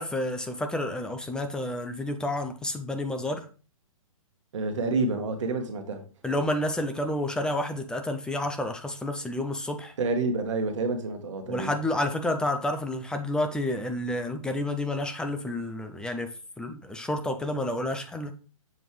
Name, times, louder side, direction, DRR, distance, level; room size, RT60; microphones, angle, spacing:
voice 1, 0.0-3.5 6.2-9.9 11.5-16.3 16.6-18.3, left 1 dB, 5° left, 0.5 m, -30 dB
voice 2, 4.5-6.1 10.0-11.7, right 3 dB, 60° right, 1.6 m, -28 dB
7.3 x 5.4 x 3.2 m
hypercardioid pair, 130°, 18 cm